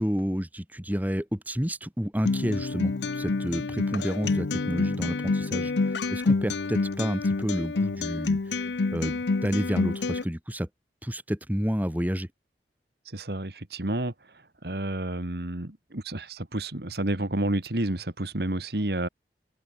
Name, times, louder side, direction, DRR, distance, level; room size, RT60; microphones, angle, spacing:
voice 1, 0.0-10.7 11.0-12.3, equal, 10° right, 1.6 m, -30 dB
Acoustic guitar, 2.3-10.2, left 3 dB, 85° left, 0.7 m, -27 dB
voice 2, 13.1-14.1 14.6-19.1, right 1 dB, 65° right, 2.0 m, -30 dB
head